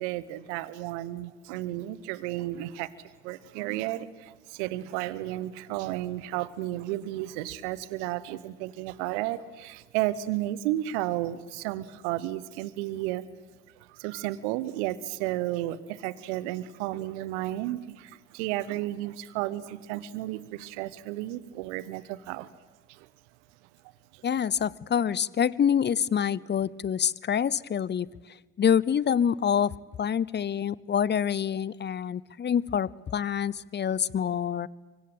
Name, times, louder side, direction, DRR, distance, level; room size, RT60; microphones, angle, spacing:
voice 1, 0.0-13.2 13.9-22.5 22.9-23.1 24.1-24.2, right 15 dB, 75° right, 18 dB, 1.1 m, -33 dB
voice 2, 24.2-28.1 28.6-29.7 30.0-34.7, left 8 dB, 30° left, 23 dB, 0.7 m, -26 dB
24.5 x 22.5 x 8.9 m, 1.2 s
hypercardioid pair, 50°, 35 cm